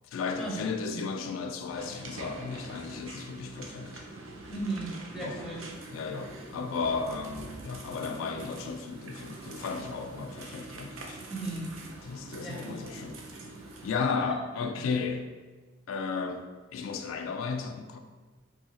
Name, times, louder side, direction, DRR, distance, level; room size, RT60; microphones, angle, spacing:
voice 1, 0.1-4.0 5.2-5.4 5.9-11.2 12.0-13.2 13.8-15.2 15.9-16.4 16.7-18.0, left 5 dB, 80° left, 5 dB, 0.3 m, -34 dB
sound 1, 1.7-14.0, right 2 dB, 80° right, 0.5 m, -44 dB
voice 2, 4.5-5.6 11.3-11.7 12.4-12.9, right 2 dB, ahead, -5 dB, 0.6 m, -36 dB
3.3 x 2.7 x 2.8 m, 1.4 s
head